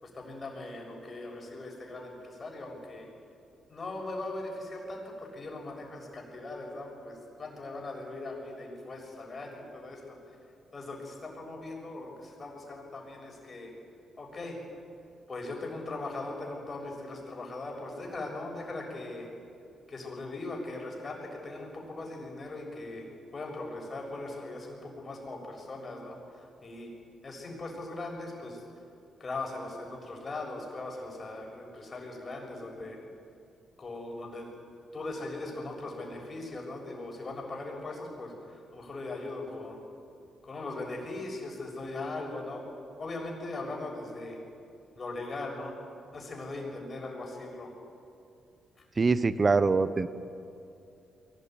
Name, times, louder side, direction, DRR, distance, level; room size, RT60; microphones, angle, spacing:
voice 1, 0.0-3.1 3.7-10.2 10.7-13.7 14.2-14.6 15.3-19.3 19.9-23.0 23.3-26.9 27.2-28.6 29.2-33.0 33.8-34.5 34.9-39.8 40.4-42.6 43.0-44.4 45.0-45.7 46.1-47.7 48.8-48.9, left 2 dB, 40° left, 0 dB, 6.8 m, -39 dB
voice 2, 49.0-50.1, right 4 dB, 35° right, 14 dB, 1.1 m, -24 dB
22.5 x 18.5 x 9.5 m, 2.6 s
cardioid pair, 70°, 0 cm